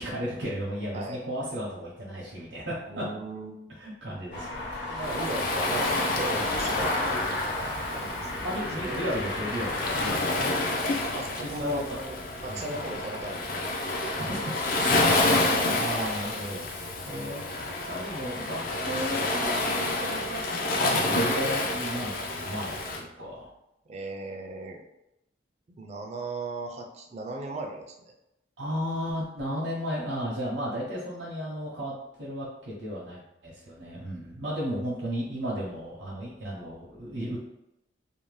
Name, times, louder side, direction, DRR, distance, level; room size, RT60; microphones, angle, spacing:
voice 1, 0.0-3.0 3.8-5.0 8.4-10.2 11.4-12.0 12.5-12.7 14.2-14.9 15.7-23.5 28.6-37.4, equal, 80° right, -6 dB, 0.7 m, -34 dB
voice 2, 2.9-3.6 4.9-9.0 11.1-13.7 15.0-15.2 23.9-24.8 25.7-28.1, right 2 dB, 35° right, 2 dB, 0.4 m, -37 dB
sound 1, 4.3-10.1, left 1 dB, 75° left, 0.9 m, -33 dB
Waves surf, 5.0-23.0, left 2 dB, 50° left, 0.4 m, -29 dB
2.6 x 2.0 x 3.1 m, 0.88 s
head